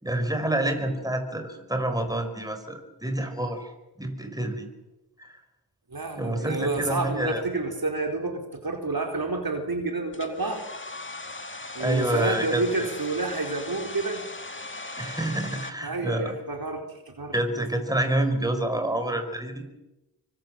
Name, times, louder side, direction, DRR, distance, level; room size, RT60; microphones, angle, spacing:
voice 1, 0.0-3.7 4.0-4.7 5.2-5.4 6.2-7.4 11.5-12.9 15.0-16.4 17.3-19.7, right 1 dB, 10° right, 6 dB, 5.3 m, -28 dB
voice 2, 5.9-10.6 11.7-14.2 15.8-16.8 17.2-17.3, right 3 dB, 60° right, 3 dB, 4.4 m, -29 dB
Domestic sounds home sounds, 10.1-15.7, left 2 dB, 30° left, 2.2 m, -39 dB
25.0 x 24.0 x 7.7 m, 0.99 s
cardioid pair, 40°, 41 cm